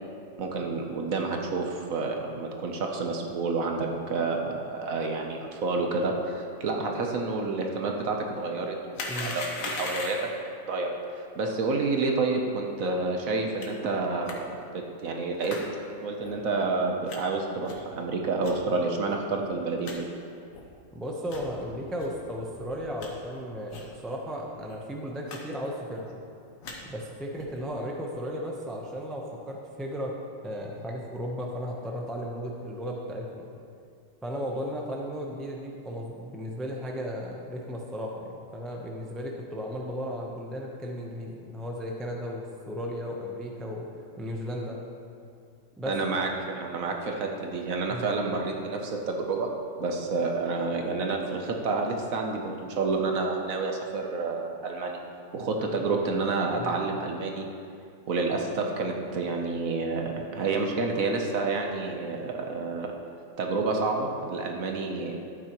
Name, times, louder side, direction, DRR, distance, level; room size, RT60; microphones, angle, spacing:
voice 1, 0.4-10.2 10.7-15.5 16.0-20.1 45.9-49.5 49.8-55.0 55.3-57.5 58.1-62.9 63.4-65.1, right 3 dB, 60° right, 2 dB, 1.1 m, -29 dB
sound 1, 8.9-10.4 13.6-13.7 14.3-14.4 15.4-15.6 16.2-16.3 17.1-17.2 17.6-17.9 18.4-18.5 19.1-19.2 19.4-19.5 19.8-20.0 20.5-20.6 21.2-21.5 22.0-22.1 22.6-23.1 23.7-23.9 24.2-24.3 24.6-24.7 25.3-25.4 25.6-26.0 26.4-26.8 27.3-27.6, left 3 dB, 55° left, 1.4 m, -38 dB
voice 2, 20.9-26.2 26.8-30.2 30.4-33.5 34.2-43.8 44.2-44.8 45.8-45.9 47.9-48.1 55.7-55.9 56.6-56.8, equal, ahead, -1 dB, 0.3 m, -35 dB
12.5 x 8.8 x 3.0 m, 2.4 s
omnidirectional pair, 1.8 m